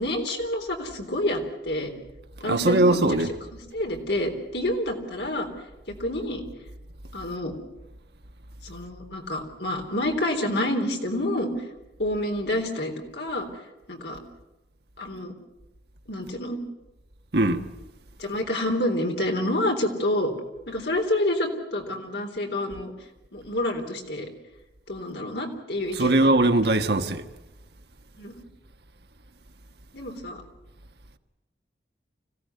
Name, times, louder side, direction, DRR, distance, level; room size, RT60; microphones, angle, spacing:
voice 1, 0.0-1.9 2.4-3.2 3.7-5.5 5.9-6.4 7.1-7.5 8.6-11.5 12.0-13.6 13.9-14.2 15.0-15.3 16.1-16.6 18.2-20.3 20.7-22.9 23.3-24.3 24.9-26.6 28.2-28.3 29.9-30.4, left 1 dB, 70° left, 3.7 m, -28 dB
voice 2, 2.4-3.3 17.3-17.6 25.9-27.3, right 2 dB, 65° right, 1.4 m, -21 dB
25.5 x 16.5 x 9.6 m
head